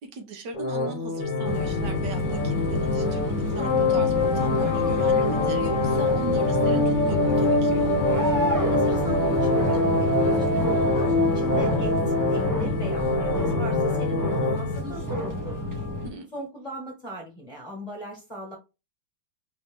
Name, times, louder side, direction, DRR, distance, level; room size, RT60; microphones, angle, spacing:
voice 1, 0.0-7.9 16.0-16.3, right 3 dB, 80° right, 4 dB, 1.6 m, -38 dB
sound 1, 0.5-14.5, left 2 dB, 65° left, 0.4 m, -25 dB
sound 2, 1.2-14.8, left 5 dB, 85° left, 1.3 m, -34 dB
sound 3, 1.4-16.1, left 1 dB, 20° right, 0.6 m, -29 dB
voice 2, 8.7-12.0 12.3-15.9 16.3-18.6, equal, 25° left, -2 dB, 1.3 m, -39 dB
4.9 x 2.7 x 3.5 m, 0.27 s
omnidirectional pair, 1.9 m